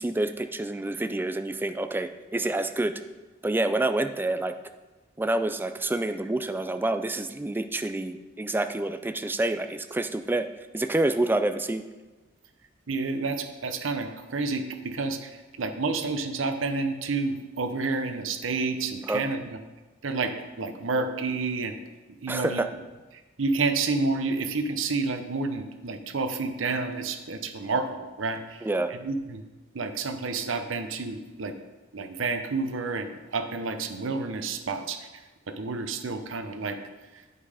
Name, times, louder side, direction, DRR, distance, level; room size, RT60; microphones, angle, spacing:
voice 1, 0.0-3.0 3.4-4.5 5.2-10.5 10.7-11.8 19.1-19.2 22.3-22.7 28.6-28.9, right 2 dB, 10° right, 9 dB, 0.3 m, -27 dB
voice 2, 12.9-15.3 15.6-19.4 20.0-21.8 22.2-22.6 23.4-28.4 29.0-29.4 29.7-31.5 31.9-35.1 35.5-36.8, right 3 dB, 85° right, 8 dB, 0.7 m, -29 dB
8.4 x 5.4 x 4.9 m, 1.2 s
head